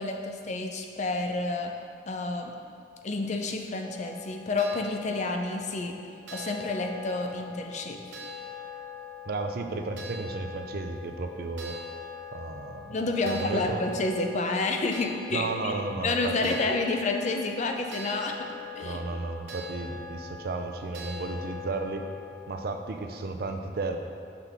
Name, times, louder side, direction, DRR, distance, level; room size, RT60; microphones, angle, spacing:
voice 1, 0.0-1.7 2.1-2.5 3.0-5.9 6.3-8.0 12.9-18.5 18.7-19.0, left 3 dB, 40° left, 3 dB, 0.5 m, -29 dB
sound 1, 3.7-23.1, left 4 dB, 75° right, 0.9 m, -43 dB
voice 2, 9.3-11.8 12.3-13.0 13.2-13.8 15.3-16.6 18.8-22.0 22.5-24.0, right 3 dB, 60° right, 5 dB, 0.5 m, -33 dB
5.9 x 5.8 x 3.4 m, 2.3 s
head